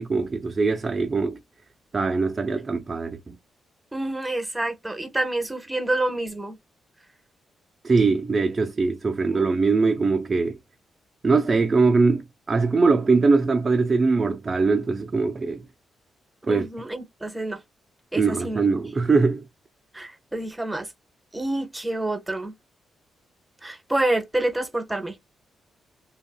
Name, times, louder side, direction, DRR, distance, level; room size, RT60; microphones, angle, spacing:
voice 1, 0.0-1.4 1.9-3.4 7.8-10.6 11.2-15.6 16.5-16.7 18.1-19.4, right 4 dB, 35° right, 0.3 m, -22 dB
voice 2, 3.9-6.6 9.3-9.5 16.5-17.6 18.1-18.6 19.9-20.9 21.3-22.5 23.6-25.2, right 1 dB, 10° right, 0.7 m, -28 dB
2.7 x 2.4 x 2.2 m
cardioid pair, 80°, 0 cm